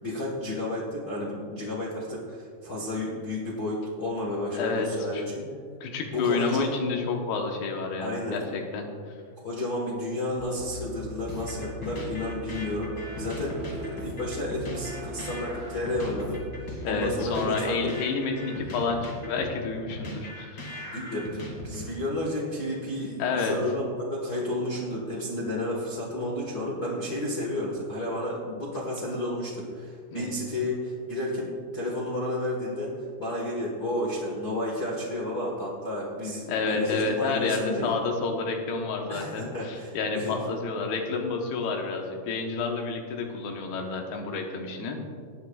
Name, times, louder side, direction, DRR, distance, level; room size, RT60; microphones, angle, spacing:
voice 1, 0.0-5.5 6.1-6.7 8.0-8.4 9.4-16.4 16.8-17.8 20.8-37.9 39.1-40.3, left 1 dB, 70° left, -5 dB, 0.9 m, -32 dB
voice 2, 4.5-4.9 5.1-5.2 5.8-8.9 16.8-20.6 23.2-23.6 30.1-30.3 36.5-45.0, left 4 dB, 85° left, 2 dB, 3.1 m, -29 dB
sound 1, 10.4-17.2, equal, 70° right, 0.9 m, -40 dB
sound 2, 11.3-22.1, left 1 dB, 40° left, 2.1 m, -40 dB
19.0 x 9.3 x 2.4 m, 2.1 s
omnidirectional pair, 4.5 m